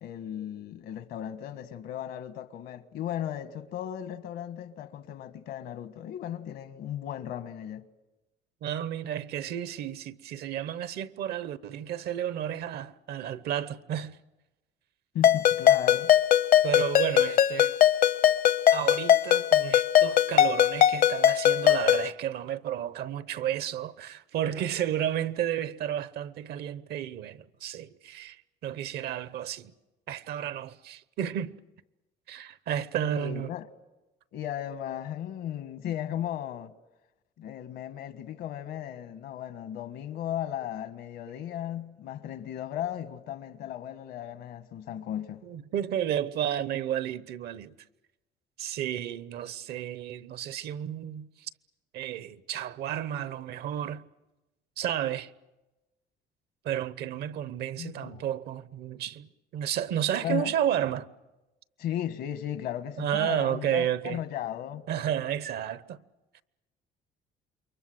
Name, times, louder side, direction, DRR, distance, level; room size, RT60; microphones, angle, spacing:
voice 1, 0.0-7.9 15.1-16.1 33.0-33.7 34.3-36.7 37.4-45.4 57.8-58.2 60.2-60.5 61.8-64.8, left 11 dB, 75° left, 1.4 m, -36 dB
voice 2, 8.6-14.2 16.6-17.7 18.7-29.7 30.1-31.6 32.3-33.5 45.4-47.7 48.6-51.5 51.9-54.0 54.8-55.3 56.6-61.1 63.0-64.2 64.9-66.0 66.3-66.4, right 10 dB, 70° right, 1.0 m, -32 dB
Ringtone, 15.2-22.1, left 11 dB, 55° left, 0.8 m, -21 dB
28.5 x 23.5 x 7.9 m
cardioid pair, 110°, 17 cm